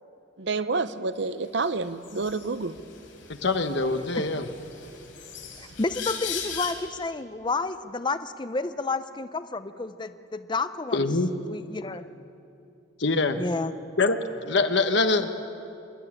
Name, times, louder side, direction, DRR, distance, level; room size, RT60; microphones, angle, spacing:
voice 1, 0.4-2.8, right 3 dB, 65° right, 12 dB, 0.7 m, -28 dB
sound 1, 1.6-1.7 2.0-6.7, left 7 dB, 85° left, 4.1 m, -39 dB
voice 2, 3.3-4.5 10.9-11.3 13.0-13.4 14.0-15.3, left 3 dB, 65° left, 8 dB, 1.2 m, -24 dB
voice 3, 5.6-11.0 11.5-12.0 13.4-13.7, left 3 dB, 25° left, 11 dB, 0.5 m, -30 dB
26.0 x 12.5 x 9.9 m, 2.7 s
head